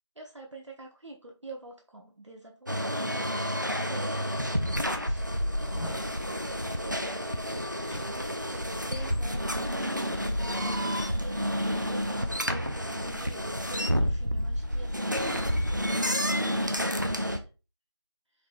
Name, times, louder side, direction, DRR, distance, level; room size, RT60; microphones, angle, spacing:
voice 1, 0.2-6.4 6.7-11.6 11.9-17.5, right 2 dB, 75° right, 1 dB, 0.9 m, -47 dB
sound 1, 2.7-17.4, equal, 40° right, 0.4 m, -30 dB
sound 2, 5.5-6.1 7.9-8.6 8.9-9.0, left 1 dB, 70° left, 1.5 m, -41 dB
4.1 x 2.5 x 3.4 m, 0.31 s
figure-of-eight pair, 180°, 15 cm